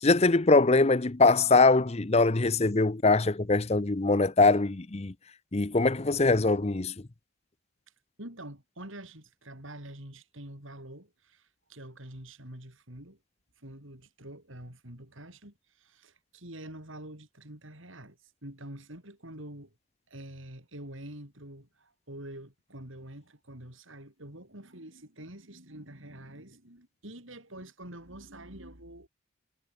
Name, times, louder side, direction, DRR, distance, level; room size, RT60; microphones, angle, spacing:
voice 1, 0.0-5.1 5.5-6.9, left 3 dB, 30° left, 0.7 m, -22 dB
voice 2, 8.2-13.2 13.6-19.7 20.1-29.1, right 1 dB, 65° right, 7.5 m, -46 dB
head